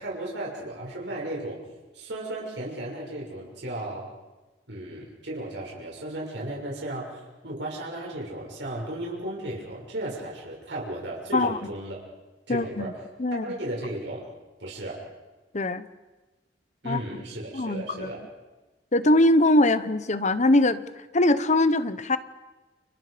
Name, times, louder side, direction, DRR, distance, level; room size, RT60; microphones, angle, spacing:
voice 1, 0.0-1.6 1.9-4.1 4.7-12.0 12.5-13.0 13.4-14.3 14.6-15.0 16.8-18.2, right 1 dB, 75° right, -3 dB, 6.8 m, -35 dB
voice 2, 12.5-12.9 13.2-13.4 15.5-15.9 16.8-17.0 17.5-18.1 18.9-20.8 21.1-22.2, left 1 dB, 40° left, 13 dB, 1.0 m, -22 dB
30.0 x 29.0 x 5.2 m, 1.2 s
head